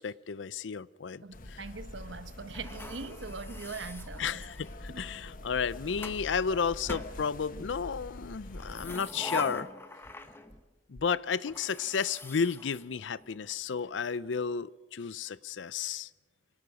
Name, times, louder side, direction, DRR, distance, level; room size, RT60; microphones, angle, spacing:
voice 1, 0.0-1.6 4.2-9.7 10.9-16.1, left 6 dB, 85° left, 0.6 m, -32 dB
voice 2, 1.2-4.5 4.9-5.0, right 4 dB, 85° right, 1.1 m, -42 dB
sound 1, 1.3-9.0, left 1 dB, 50° left, 1.3 m, -45 dB
sound 2, 2.5-4.8 5.6-6.2 6.9-7.8 8.5-10.7 11.0-11.1 11.5-13.5, left 2 dB, 15° left, 1.1 m, -43 dB
25.5 x 18.0 x 6.3 m
head